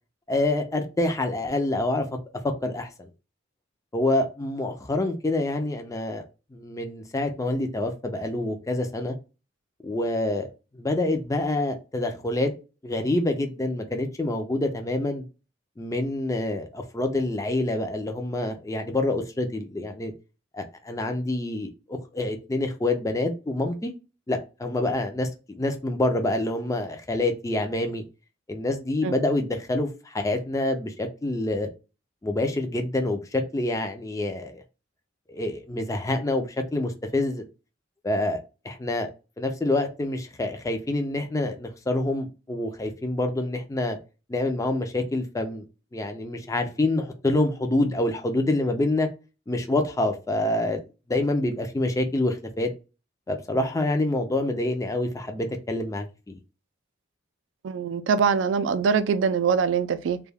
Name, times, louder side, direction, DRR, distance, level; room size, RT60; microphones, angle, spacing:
voice 1, 0.3-2.1 2.4-3.1 3.9-6.2 6.5-9.2 9.8-10.5 10.7-12.5 12.8-15.2 15.8-20.1 20.5-23.9 24.3-28.0 28.5-31.7 32.2-34.6 35.3-37.4 38.0-38.4 38.6-39.1 39.4-44.0 44.3-45.7 45.9-49.1 49.5-50.8 51.1-52.7 53.3-56.3, left 2 dB, 15° left, 0.4 m, -27 dB
voice 2, 57.6-60.2, right 6 dB, 70° right, 0.3 m, -23 dB
2.2 x 2.2 x 3.2 m
head